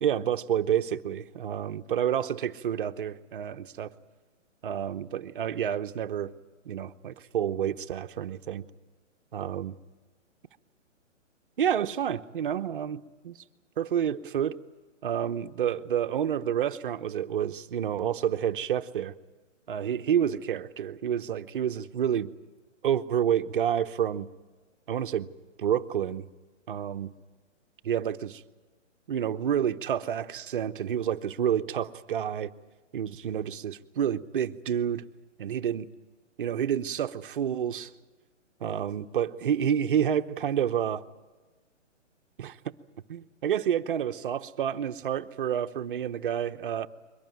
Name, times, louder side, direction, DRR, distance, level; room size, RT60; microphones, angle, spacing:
voice 1, 0.0-3.9 4.6-6.3 6.6-8.6 9.3-9.8 11.6-13.4 13.8-14.6 15.0-19.1 19.7-22.3 22.8-24.3 24.9-25.3 25.6-26.3 26.7-27.1 27.8-28.4 29.1-32.5 32.9-35.0 35.4-35.9 36.4-37.9 38.6-41.0 42.4-42.7 43.1-46.9, right 9 dB, 45° right, 9 dB, 0.9 m, -29 dB
23.0 x 18.0 x 9.3 m, 1.3 s
hypercardioid pair, 165°, 37 cm